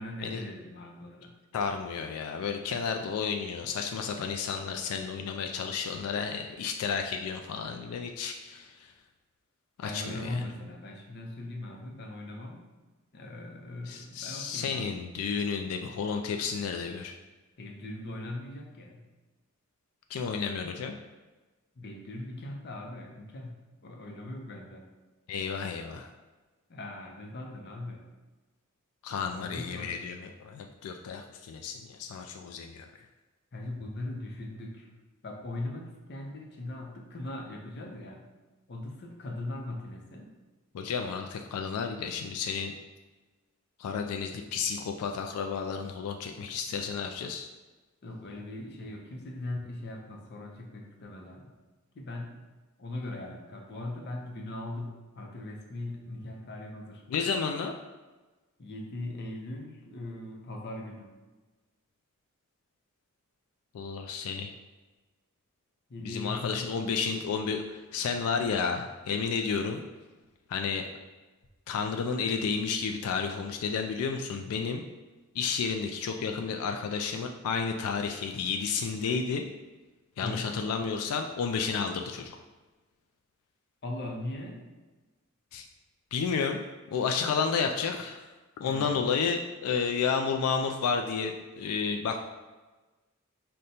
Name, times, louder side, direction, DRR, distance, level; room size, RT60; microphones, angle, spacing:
voice 1, 0.0-1.3 9.8-12.7 13.1-15.0 17.6-19.0 21.8-23.5 23.8-24.9 26.7-28.1 29.2-29.9 33.5-34.9 35.2-38.3 38.7-40.3 48.0-51.5 51.9-52.4 52.8-57.0 58.6-61.1 65.9-66.7 80.2-80.6 83.8-84.6 88.6-89.1, left 1 dB, 50° left, 1 dB, 0.6 m, -40 dB
voice 2, 1.5-8.9 9.8-10.4 13.9-17.2 20.1-21.0 25.3-26.1 29.0-32.9 40.7-42.7 43.8-47.5 57.1-57.8 63.7-64.5 66.0-69.8 70.5-70.9 71.7-74.8 75.3-79.5 80.2-82.4 85.5-85.7 86.1-86.6 86.9-88.3 88.6-92.2, left 5 dB, 85° left, 4 dB, 0.3 m, -31 dB
5.0 x 2.2 x 4.1 m, 1.2 s
head